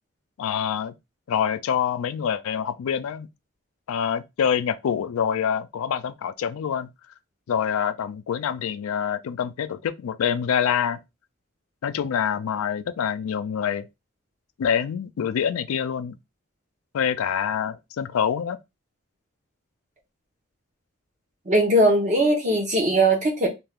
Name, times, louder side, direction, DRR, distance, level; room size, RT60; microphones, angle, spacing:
voice 1, 0.4-0.9 1.3-3.3 3.9-6.9 7.5-11.0 11.8-13.9 14.6-16.2 16.9-18.6, left 8 dB, 90° left, 0.3 m, -26 dB
voice 2, 21.5-23.5, right 1 dB, 35° right, 0.9 m, -20 dB
2.7 x 2.4 x 3.4 m
head